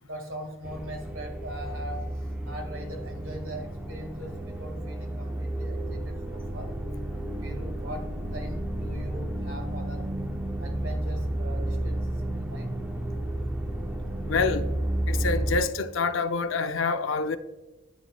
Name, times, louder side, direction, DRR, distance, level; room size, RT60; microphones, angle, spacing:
voice 1, 0.0-6.7 7.4-8.1 8.3-10.1 10.6-12.7, right 1 dB, 75° right, 1.9 m, -41 dB
sound 1, 0.6-15.6, right 1 dB, 5° right, 0.5 m, -32 dB
voice 2, 14.3-14.7 15.1-17.4, left 4 dB, 65° left, 0.5 m, -27 dB
9.5 x 7.1 x 2.3 m
head